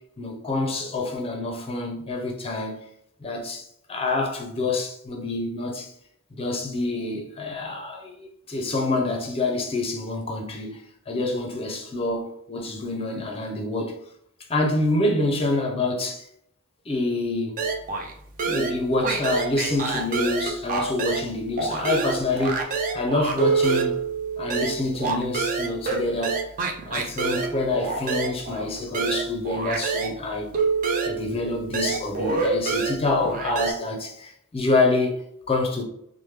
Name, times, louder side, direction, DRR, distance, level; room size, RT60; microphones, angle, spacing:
voice 1, 0.2-2.8 3.2-5.9 6.3-14.0 14.5-16.2 16.9-17.6 18.4-23.9 24.4-26.4 26.8-30.5 31.0-35.8, left 2 dB, 25° left, 0.5 m, -27 dB
sound 1, 17.6-18.1 18.4-21.3 21.6-30.2 30.5-33.7, right 4 dB, 40° right, 0.4 m, -27 dB
3.1 x 2.1 x 3.2 m
head